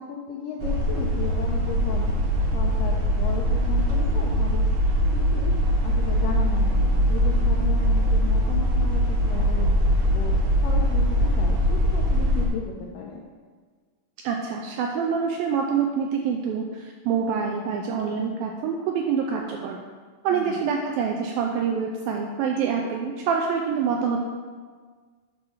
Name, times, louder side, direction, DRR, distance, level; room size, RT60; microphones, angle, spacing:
voice 1, 0.0-4.7 5.1-5.5 5.8-9.7 10.1-13.2 20.3-20.7, left 5 dB, 85° left, -1 dB, 1.9 m, -35 dB
sound 1, 0.6-12.5, equal, 65° right, 1.9 m, -22 dB
voice 2, 14.2-19.8 20.2-24.3, right 6 dB, 85° right, 2 dB, 2.1 m, -26 dB
8.8 x 4.3 x 5.6 m, 1.5 s
omnidirectional pair, 4.7 m